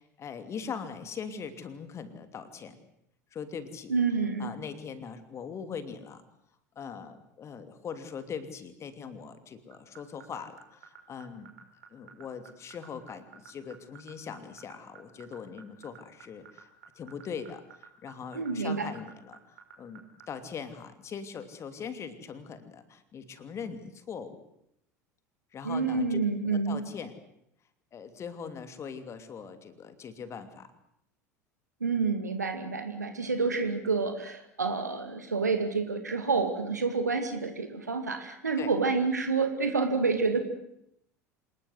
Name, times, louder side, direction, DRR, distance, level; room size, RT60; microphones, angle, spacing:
voice 1, 0.0-2.8 3.3-3.9 4.4-6.2 6.7-11.5 11.9-16.7 16.9-19.4 19.8-24.4 25.5-27.2 27.9-30.7 38.6-38.7, left 6 dB, 30° left, 9 dB, 2.8 m, -41 dB
voice 2, 3.9-4.5 18.3-18.9 25.6-26.8 31.8-40.4, right 4 dB, 80° right, 7 dB, 2.3 m, -28 dB
sound 1, 9.7-20.2, right 10 dB, 60° right, 4.9 m, -50 dB
27.0 x 20.0 x 8.0 m, 0.76 s
figure-of-eight pair, 70°, 9 cm